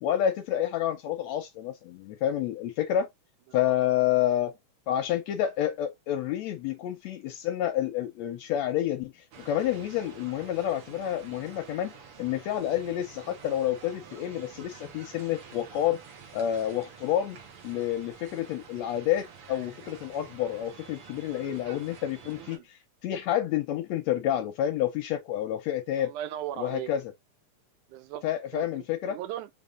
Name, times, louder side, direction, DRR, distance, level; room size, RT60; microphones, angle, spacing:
voice 1, 0.0-3.1 3.5-4.5 4.9-11.9 12.2-16.0 16.3-17.4 17.6-26.1 26.6-27.0 28.2-29.2, left 11 dB, 75° left, 1.6 m, -29 dB
sound 1, 9.3-22.6, right 6 dB, 60° right, 1.7 m, -49 dB
voice 2, 26.0-26.9 27.9-28.2 28.5-29.5, right 12 dB, 80° right, 2.0 m, -37 dB
5.2 x 3.7 x 2.4 m
omnidirectional pair, 3.6 m